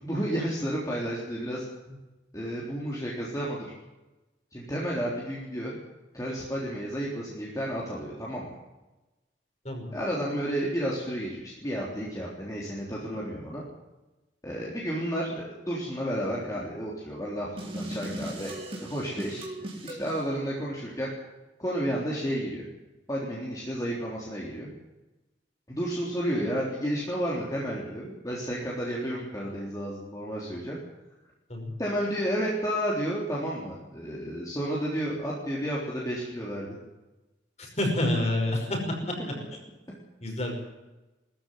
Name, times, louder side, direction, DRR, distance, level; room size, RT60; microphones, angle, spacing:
voice 1, 0.0-2.0 2.3-3.7 4.5-5.8 6.1-8.5 9.9-13.6 14.4-19.4 19.8-21.1 21.6-22.6 23.1-24.7 25.7-30.8 31.8-36.7, equal, 20° left, -5 dB, 3.6 m, -31 dB
sound 1, 17.6-20.2, right 1 dB, 30° right, 3.9 m, -37 dB
voice 2, 37.6-38.8 40.2-40.5, left 1 dB, 35° left, 1 dB, 5.7 m, -28 dB
20.0 x 14.0 x 9.5 m, 1.1 s
head